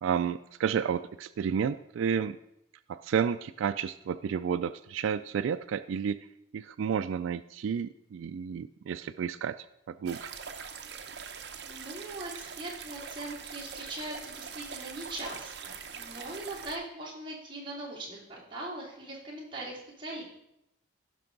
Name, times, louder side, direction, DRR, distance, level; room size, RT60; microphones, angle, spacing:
voice 1, 0.0-2.4 2.9-6.3 6.5-10.3, right 7 dB, 85° right, 13 dB, 0.3 m, -31 dB
sound 1, 10.1-16.8, right 6 dB, 60° right, 0.7 m, -43 dB
voice 2, 11.6-20.2, right 2 dB, 25° right, -6 dB, 2.9 m, -41 dB
15.5 x 6.0 x 3.9 m, 0.82 s
head